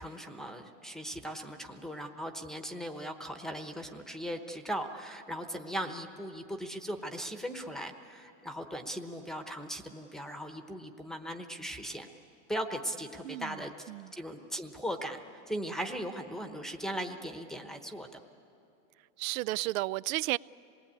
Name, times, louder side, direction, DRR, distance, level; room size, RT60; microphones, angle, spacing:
voice 1, 0.0-12.1 12.5-15.2 15.5-18.1, equal, ahead, 0.9 m, -38 dB
voice 2, 13.2-14.1 19.2-20.4, right 18 dB, 80° right, 0.5 m, -33 dB
26.5 x 20.0 x 8.6 m
supercardioid pair, 145°, 41 cm